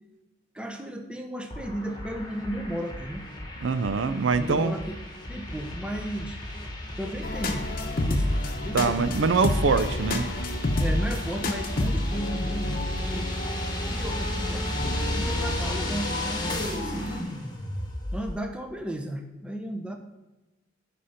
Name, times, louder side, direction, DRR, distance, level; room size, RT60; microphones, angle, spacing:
voice 1, 0.5-3.3 4.4-5.0 5.3-6.4 7.0-7.7 8.0-9.2 10.8-13.6 13.9-17.4 18.1-20.0, right 1 dB, 5° right, 4 dB, 0.7 m, -35 dB
sound 1, 1.5-18.4, left 1 dB, 20° left, 1.3 m, -34 dB
voice 2, 3.6-4.7 8.7-10.3, right 4 dB, 75° right, 12 dB, 0.5 m, -24 dB
sound 2, 7.2-17.2, left 1 dB, 45° left, 0.9 m, -30 dB
10.0 x 4.2 x 5.7 m, 1.1 s
head